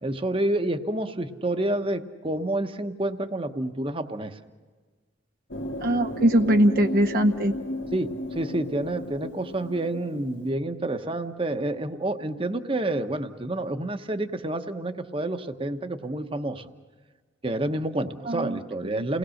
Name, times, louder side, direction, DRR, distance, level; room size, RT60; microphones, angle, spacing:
voice 1, 0.0-4.4 7.9-16.7 17.4-19.2, right 1 dB, 30° right, 8 dB, 1.0 m, -29 dB
sound 1, 5.5-10.5, left 1 dB, 75° left, 1.7 m, -35 dB
voice 2, 5.8-7.5 18.3-19.1, right 1 dB, 50° right, 5 dB, 0.8 m, -22 dB
29.5 x 19.5 x 6.5 m, 1.4 s
head